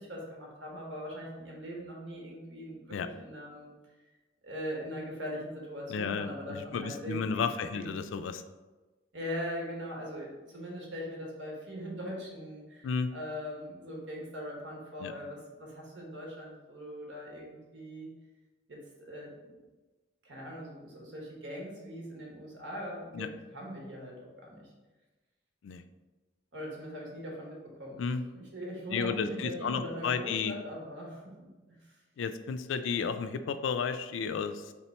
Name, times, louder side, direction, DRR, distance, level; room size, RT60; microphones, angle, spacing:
voice 1, 0.0-3.7 4.4-7.4 7.7-7.9 9.1-18.1 18.7-19.6 20.2-24.7 26.5-28.0 28.3-31.9, equal, 80° right, -2 dB, 1.2 m, -41 dB
voice 2, 5.9-8.4 12.8-13.1 15.0-15.1 23.1-23.3 25.6-25.8 28.0-28.2 28.9-30.5 32.2-34.7, left 6 dB, 85° left, 10 dB, 0.3 m, -32 dB
3.7 x 2.9 x 4.2 m, 1.2 s
head